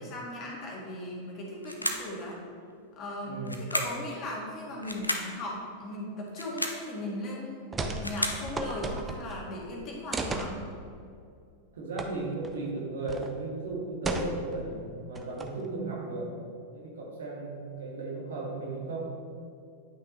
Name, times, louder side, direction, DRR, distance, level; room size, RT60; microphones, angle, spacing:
voice 1, 0.0-2.4 3.0-10.6, left 1 dB, 35° left, -3 dB, 1.8 m, -38 dB
sound 1, 1.6-2.2 3.5-4.1 4.8-5.3 6.3-6.9 7.7-8.5, left 1 dB, 85° left, 0.6 m, -32 dB
voice 2, 3.2-3.6 11.7-16.3 16.7-19.0, right 2 dB, 65° right, -3 dB, 1.7 m, -36 dB
sound 2, 7.7-8.1 8.3-9.4 10.1-10.5 12.0-12.1 12.4-12.5 13.1-13.3 14.0-14.6 15.1-15.7, right 3 dB, 15° right, 0.6 m, -34 dB
9.8 x 5.8 x 3.1 m, 2.4 s
figure-of-eight pair, 90°, 0 cm